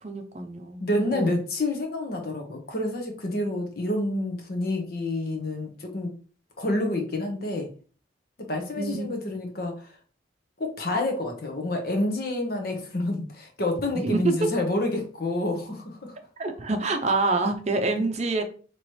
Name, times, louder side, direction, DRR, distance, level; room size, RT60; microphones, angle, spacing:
voice 1, 0.0-1.3 8.8-9.2 13.9-14.5 16.4-18.4, right 3 dB, 35° right, 6 dB, 0.6 m, -27 dB
voice 2, 0.8-6.1 6.6-7.7 8.4-9.7 10.6-16.1 18.0-18.1, left 1 dB, 55° left, 3 dB, 1.0 m, -28 dB
4.5 x 3.0 x 3.1 m, 0.40 s
head